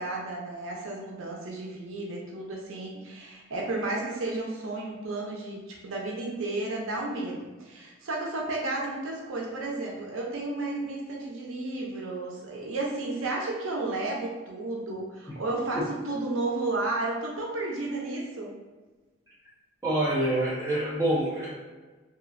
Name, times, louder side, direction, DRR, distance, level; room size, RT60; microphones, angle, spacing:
voice 1, 0.0-18.5, right 2 dB, 85° right, -2 dB, 0.6 m, -32 dB
voice 2, 19.8-21.5, right 1 dB, 15° right, -8 dB, 0.8 m, -26 dB
2.9 x 2.4 x 2.4 m, 1.3 s
head